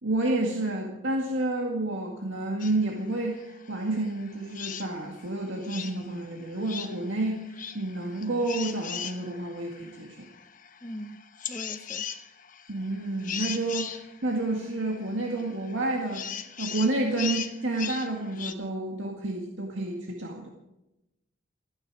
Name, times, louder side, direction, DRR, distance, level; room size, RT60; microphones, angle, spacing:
voice 1, 0.0-10.3 12.7-16.3 16.6-20.5, right 2 dB, 75° right, 0 dB, 1.9 m, -30 dB
sound 1, 2.6-18.5, left 8 dB, 40° left, 1.1 m, -40 dB
voice 2, 10.8-12.1, equal, 20° left, 11 dB, 0.8 m, -41 dB
29.0 x 9.9 x 4.8 m, 0.95 s
head